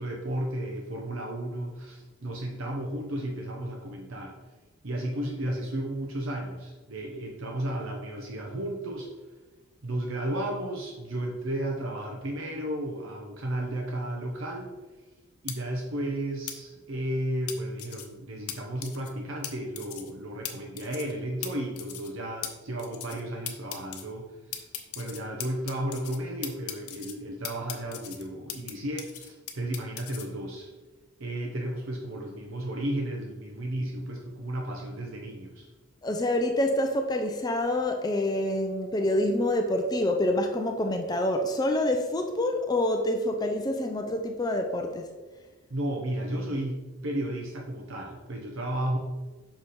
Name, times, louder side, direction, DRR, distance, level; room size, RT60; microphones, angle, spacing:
voice 1, 0.0-4.3 4.8-9.1 9.8-14.7 15.4-24.6 25.0-30.7 31.2-35.7 45.7-49.0, right 1 dB, 65° right, 0 dB, 0.8 m, -33 dB
sound 1, 15.5-15.6 16.5-16.6 17.5-18.1 18.5-18.6 18.8-19.1 19.4-19.5 19.8-20.1 20.4-20.5 20.8-21.1 21.4-21.5 21.8-22.1 22.4-22.5 22.8-23.2 23.5-24.0 24.5-26.2 26.4-27.1 27.4-28.7 29.0-30.2, left 10 dB, 85° left, 0.8 m, -37 dB
voice 2, 36.0-45.1, left 1 dB, 20° left, 4 dB, 0.4 m, -27 dB
5.9 x 4.9 x 4.2 m, 1.3 s
head